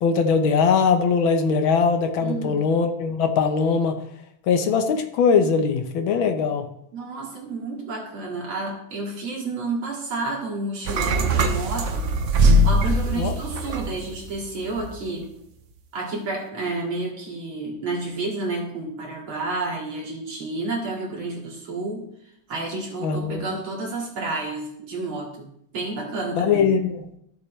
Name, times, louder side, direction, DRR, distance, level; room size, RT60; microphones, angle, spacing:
voice 1, 0.0-4.0 4.5-6.7 13.2-13.3 23.0-23.4 26.4-27.0, left 5 dB, 80° left, 6 dB, 1.8 m, -21 dB
voice 2, 2.2-2.7 6.9-12.1 12.6-15.3 15.9-22.0 22.5-25.5 25.7-26.7, right 3 dB, 80° right, -2 dB, 3.2 m, -30 dB
sound 1, 10.8-14.3 14.6-14.9, right 1 dB, 60° right, 0.8 m, -21 dB
14.0 x 7.2 x 3.2 m, 0.73 s
omnidirectional pair, 2.2 m